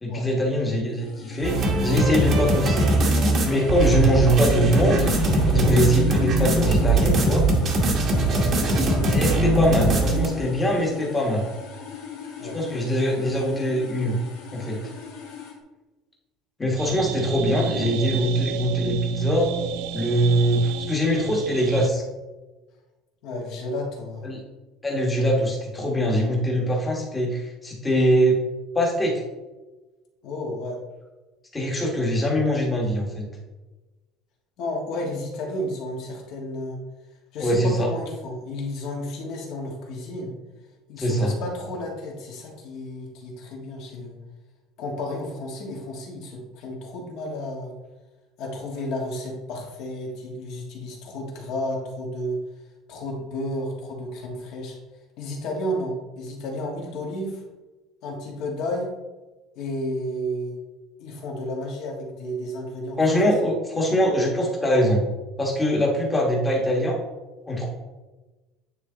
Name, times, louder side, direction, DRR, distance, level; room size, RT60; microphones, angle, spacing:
voice 1, 0.0-3.0 3.4-5.1 5.5-7.4 9.1-11.5 12.5-14.2 14.5-14.8 16.6-19.5 19.9-22.0 24.2-24.4 24.8-28.4 28.7-29.2 31.5-33.3 37.4-37.9 41.0-41.3 63.0-65.1 65.4-67.0 67.5-67.7, equal, 10° left, -1 dB, 1.2 m, -22 dB
sound 1, 0.9-15.6, left 6 dB, 90° left, 1.8 m, -40 dB
sound 2, 1.4-10.3, right 1 dB, 30° right, 1.0 m, -21 dB
sound 3, 16.8-21.9, right 11 dB, 70° right, 0.4 m, -32 dB
voice 2, 23.2-24.3 30.2-30.8 34.6-36.8 37.3-40.3 40.9-44.2 44.8-47.7 48.4-52.4 52.9-54.8 55.2-57.4 58.0-58.9 59.6-60.6 61.0-63.0 63.2-63.3, left 1 dB, 55° left, 0 dB, 1.6 m, -32 dB
9.2 x 3.3 x 3.8 m, 1.2 s
cardioid pair, 170°, 0 cm